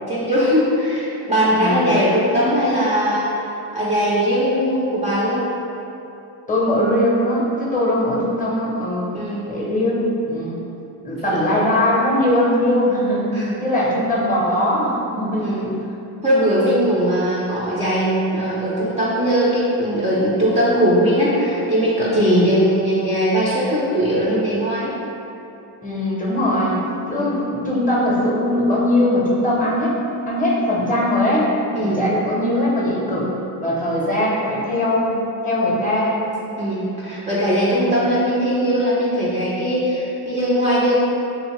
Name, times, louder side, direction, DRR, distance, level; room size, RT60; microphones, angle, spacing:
voice 1, 0.1-3.5 3.7-5.4 9.1-9.5 11.3-11.4 13.3-13.6 15.4-15.7 16.2-24.9 27.1-27.4 31.7-32.1 36.6-40.9, equal, 15° right, -7 dB, 0.3 m, -20 dB
voice 2, 1.5-1.9 6.5-9.1 9.5-10.0 10.3-10.6 11.0-13.3 13.6-15.5 22.1-22.5 25.8-26.7 27.1-30.0 30.3-31.5 31.8-33.3 33.6-35.1 35.4-36.2 37.7-38.0, left 1 dB, 15° left, -5 dB, 0.6 m, -20 dB
2.7 x 2.7 x 2.9 m, 2.8 s
cardioid pair, 90°, 49 cm